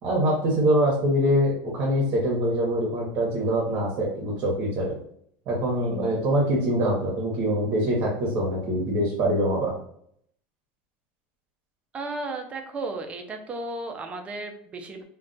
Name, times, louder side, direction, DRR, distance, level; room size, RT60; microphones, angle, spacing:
voice 1, 0.0-4.9 5.5-9.7, equal, 45° right, -3 dB, 0.9 m, -24 dB
voice 2, 11.9-15.0, right 2 dB, 25° right, 5 dB, 0.4 m, -34 dB
2.3 x 2.2 x 3.9 m, 0.67 s
supercardioid pair, 135°, 6 cm